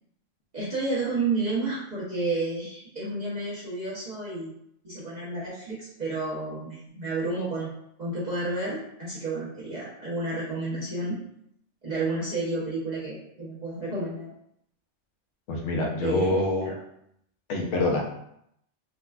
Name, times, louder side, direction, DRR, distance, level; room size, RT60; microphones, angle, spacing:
voice 1, 0.5-4.5 4.8-11.2 11.8-14.3 16.0-16.7, right 3 dB, 40° right, -9 dB, 0.9 m, -31 dB
voice 2, 15.5-16.7 17.5-18.0, left 2 dB, 75° left, 0 dB, 1.0 m, -26 dB
3.9 x 2.2 x 2.3 m, 0.75 s
omnidirectional pair, 1.3 m